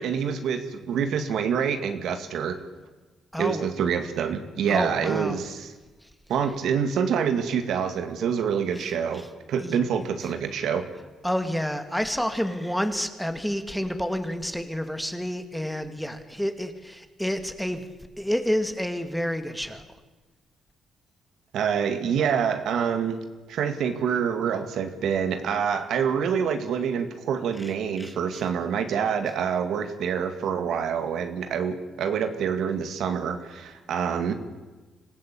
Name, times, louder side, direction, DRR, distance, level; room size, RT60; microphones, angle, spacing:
voice 1, 0.0-2.6 3.4-5.7 6.3-10.9 21.5-34.3, right 7 dB, 75° right, 8 dB, 2.1 m, -26 dB
voice 2, 3.3-3.6 4.7-5.4 8.8-9.3 9.6-9.8 11.2-17.9 18.2-19.8 27.6-27.7 28.0-28.4, equal, ahead, 8 dB, 2.2 m, -29 dB
25.5 x 15.0 x 8.6 m, 1.2 s
cardioid pair, 90°, 0 cm